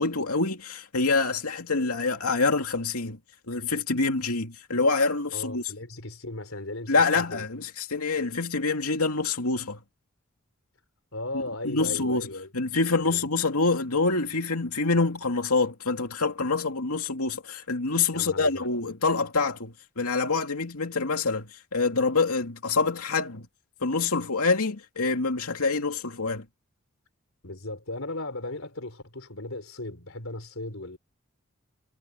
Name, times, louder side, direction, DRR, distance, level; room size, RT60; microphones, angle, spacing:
voice 1, 0.0-3.2 3.5-5.6 6.9-9.8 11.6-12.3 12.5-23.5 23.8-26.4, left 3 dB, 85° left, 2.6 m, -26 dB
voice 2, 5.3-7.5 11.1-12.5 13.0-13.2 18.1-18.7 27.4-31.0, left 2 dB, 65° left, 4.5 m, -36 dB
head